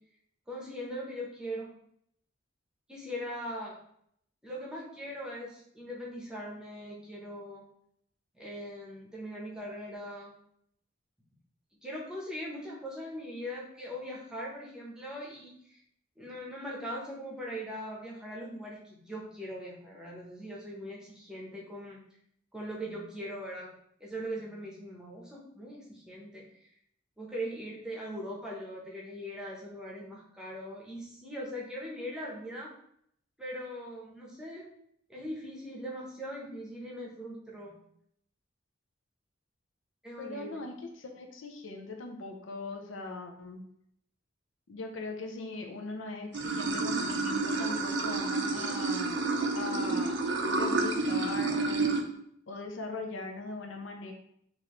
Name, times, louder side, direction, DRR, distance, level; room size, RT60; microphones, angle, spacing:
voice 1, 0.5-1.7 2.9-3.8 4.4-7.6 8.3-10.3 11.8-15.8 16.2-22.0 22.5-23.7 24.0-26.4 27.2-32.7 33.4-34.7 35.1-37.8 40.0-40.6, equal, 5° right, -4 dB, 0.8 m, -40 dB
voice 2, 40.2-43.6 44.7-49.2 49.5-50.2 50.5-52.0 52.5-54.1, left 3 dB, 75° left, 2 dB, 0.6 m, -40 dB
Water / Sink (filling or washing), 46.3-52.0, right 3 dB, 65° right, 0.5 m, -30 dB
4.6 x 2.6 x 3.1 m, 0.70 s
head